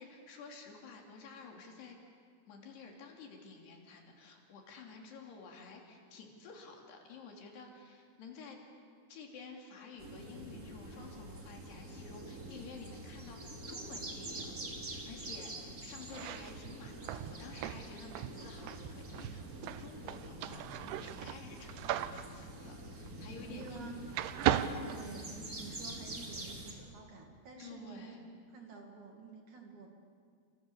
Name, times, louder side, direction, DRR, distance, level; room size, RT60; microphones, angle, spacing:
voice 1, 0.0-2.0 2.5-8.6 9.1-14.5 14.8-23.9 26.7-26.8 27.6-28.2, left 4 dB, 75° left, 1 dB, 5.0 m, -51 dB
sound 1, 10.0-26.7, right 1 dB, 25° right, 2.6 m, -46 dB
sound 2, 16.0-23.8 24.1-25.8, right 11 dB, 80° right, 2.8 m, -38 dB
voice 2, 23.5-24.0 24.8-28.2 28.5-29.9, right 4 dB, 50° right, 2 dB, 3.5 m, -49 dB
29.5 x 26.5 x 7.0 m, 2.1 s
omnidirectional pair, 4.9 m